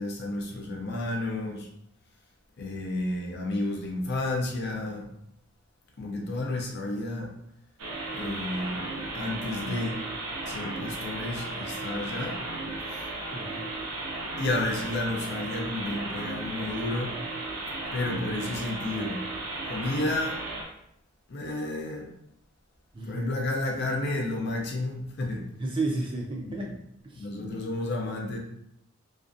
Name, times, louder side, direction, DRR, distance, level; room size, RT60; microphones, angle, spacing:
voice 1, 0.0-1.7 2.6-5.1 6.0-7.3 8.1-8.9 9.1-10.0 10.4-12.4 12.9-13.0 14.4-17.2 17.9-19.2 19.7-20.4 21.3-22.1 23.0-25.4 26.5-26.7 27.2-28.4, left 2 dB, 50° left, 0 dB, 0.5 m, -31 dB
sound 1, 7.8-20.6, right 2 dB, 80° right, 0.5 m, -35 dB
voice 2, 13.3-13.7 22.9-23.3 25.6-26.7 27.0-27.3, right 2 dB, 20° right, -2 dB, 0.3 m, -32 dB
2.5 x 2.2 x 2.5 m, 0.75 s
head